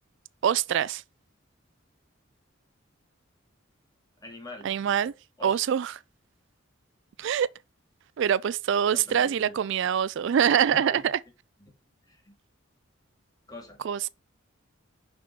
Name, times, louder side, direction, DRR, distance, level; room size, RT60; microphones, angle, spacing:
voice 1, 0.4-1.0 4.6-5.1 5.4-5.9 7.2-7.5 8.2-11.2 13.8-14.1, right 8 dB, 65° right, 0.3 m, -24 dB
voice 2, 4.2-4.7 5.4-5.6 8.9-9.7 10.6-11.0 11.6-11.7 12.1-12.4 13.5-13.8, left 1 dB, 20° left, 2.5 m, -43 dB
6.2 x 5.9 x 5.6 m
head